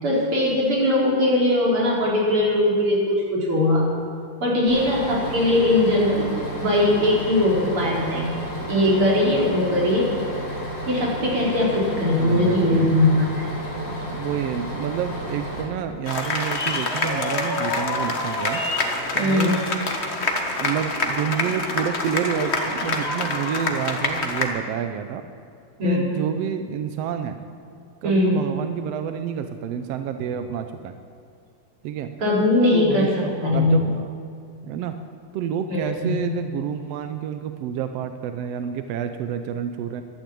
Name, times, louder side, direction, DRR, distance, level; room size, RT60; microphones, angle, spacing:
voice 1, 0.0-3.8 4.4-6.3 6.6-8.3 8.7-10.1 10.9-13.5 19.2-19.6 25.8-26.1 28.0-28.4 32.2-33.8 35.7-36.1, left 1 dB, 45° right, -5 dB, 5.0 m, -20 dB
Bus, 4.7-15.6, right 1 dB, 40° left, 4.6 m, -32 dB
voice 2, 12.2-12.9 14.1-18.6 19.1-19.7 20.6-25.2 25.8-27.4 28.0-30.9 31.8-32.1 32.7-34.2 34.6-34.9 35.3-40.0, right 8 dB, 75° right, 8 dB, 1.5 m, -29 dB
sound 1, 16.1-24.5, left 2 dB, 80° left, 0.6 m, -26 dB
12.0 x 11.5 x 8.6 m, 2.4 s
omnidirectional pair, 3.5 m